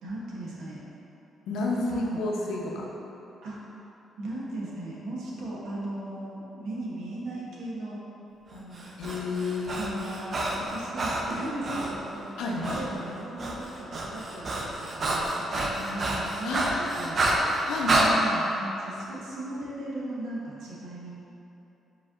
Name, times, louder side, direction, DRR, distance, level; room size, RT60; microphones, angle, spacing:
voice 1, 0.0-0.8 1.6-2.5 3.4-3.6 4.2-8.0 8.5-8.9 9.8-21.2, right 1 dB, 80° right, -5 dB, 0.9 m, -37 dB
voice 2, 1.5-2.9 9.0-9.8 12.4-12.8 16.1-16.2 16.4-18.1, left 2 dB, 85° left, -2 dB, 0.6 m, -31 dB
Breathing, 8.8-12.0 12.6-12.9 13.2-18.1, right 2 dB, 45° right, 0.5 m, -29 dB
4.8 x 4.2 x 2.5 m, 3.0 s
cardioid pair, 90°, 0 cm